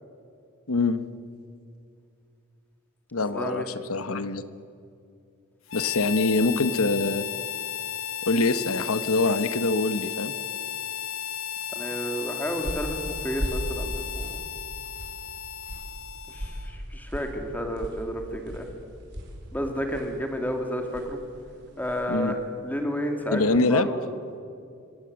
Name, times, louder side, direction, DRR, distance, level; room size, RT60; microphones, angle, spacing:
voice 1, 0.7-1.0 3.1-3.6 3.9-4.4 5.7-7.2 8.3-10.3 22.1-22.3 23.3-23.9, left 3 dB, 80° left, 12 dB, 1.1 m, -24 dB
voice 2, 3.3-3.7 11.7-14.4 16.3-18.7 19.5-21.2 21.8-23.4 23.7-24.1, equal, 10° left, 4 dB, 2.6 m, -31 dB
Harmonica, 5.7-16.8, left 10 dB, 65° left, 0.7 m, -34 dB
sound 1, 12.1-22.2, equal, 55° right, 5.2 m, -38 dB
26.0 x 18.5 x 8.0 m, 2.5 s
head